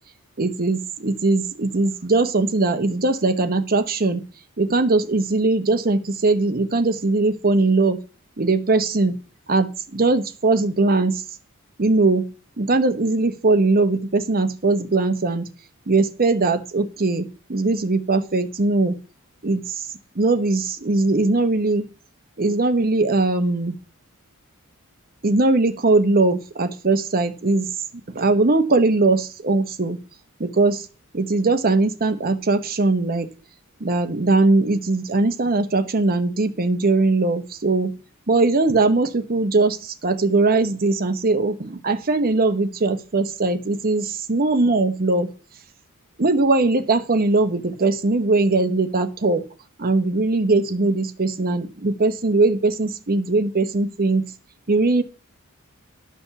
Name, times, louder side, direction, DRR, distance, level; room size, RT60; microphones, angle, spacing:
voice 1, 0.4-4.2 4.6-8.0 8.4-9.2 9.5-11.2 11.8-12.3 12.6-15.5 15.9-19.0 19.4-19.8 20.1-21.8 22.4-23.8 25.2-27.7 28.1-30.0 30.4-30.9 31.1-33.3 33.8-38.0 38.3-45.3 46.2-49.4 49.8-54.3 54.7-55.0, right 3 dB, 45° right, 8 dB, 1.0 m, -20 dB
11.0 x 5.2 x 6.9 m, 0.36 s
head